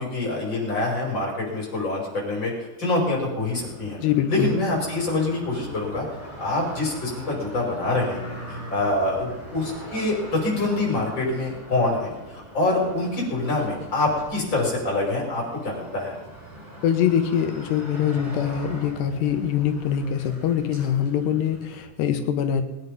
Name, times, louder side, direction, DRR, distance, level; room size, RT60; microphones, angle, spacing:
voice 1, 0.0-2.5 2.8-4.0 4.3-6.1 6.4-16.1, left 2 dB, 25° left, -2 dB, 5.7 m, -25 dB
sound 1, 3.4-21.8, right 1 dB, 50° right, 6.3 m, -41 dB
voice 2, 4.0-4.5 16.8-22.6, left 9 dB, 85° left, 7 dB, 3.3 m, -23 dB
21.5 x 9.9 x 5.4 m, 1.1 s
omnidirectional pair, 4.7 m